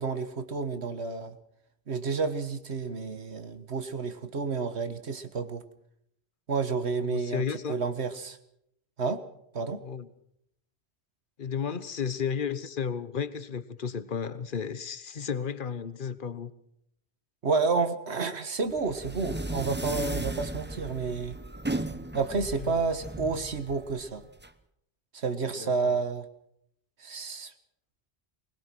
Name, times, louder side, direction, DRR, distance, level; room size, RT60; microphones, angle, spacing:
voice 1, 0.0-1.4 1.9-5.6 6.5-7.4 7.7-8.4 9.0-9.2 9.5-9.8 17.4-21.4 22.1-24.2 25.1-26.2 27.0-27.5, right 4 dB, 90° right, 10 dB, 1.8 m, -30 dB
voice 2, 7.0-7.7 9.8-10.1 11.4-16.5 22.6-22.9 25.6-26.0, left 7 dB, 55° left, 14 dB, 1.3 m, -33 dB
sound 1, 18.7-24.5, right 2 dB, 10° right, 0.8 m, -36 dB
21.0 x 20.5 x 6.2 m, 0.73 s
omnidirectional pair, 1.1 m